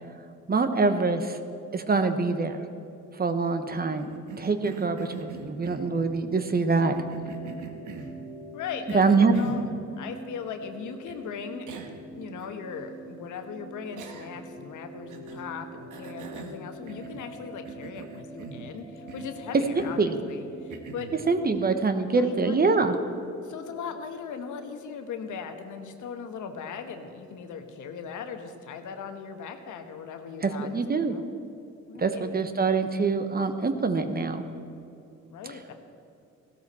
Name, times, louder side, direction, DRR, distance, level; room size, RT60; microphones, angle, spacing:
voice 1, 0.5-1.4 1.7-2.6 3.2-4.1 4.4-7.0 8.9-9.3 20.0-20.1 21.3-22.9 30.4-31.1 32.0-34.4, right 4 dB, 30° right, 9 dB, 1.0 m, -24 dB
Cough, 4.0-6.2 6.9-8.2 8.9-9.7 11.1-11.2 11.7-12.0 12.4-12.5 14.0-14.5 15.1-15.5 15.9-17.3 17.6-18.7 19.1-19.4 19.8-20.1 20.7-21.2, right 5 dB, 80° right, 1.3 m, -42 dB
sound 1, 6.7-21.7, right 1 dB, 10° left, 3.1 m, -45 dB
voice 2, 8.5-21.1 22.1-22.9 23.4-31.3 31.9-32.4 35.3-35.7, left 6 dB, 75° left, 6 dB, 1.3 m, -39 dB
16.0 x 12.5 x 4.3 m, 2.7 s
cardioid pair, 90°, 30 cm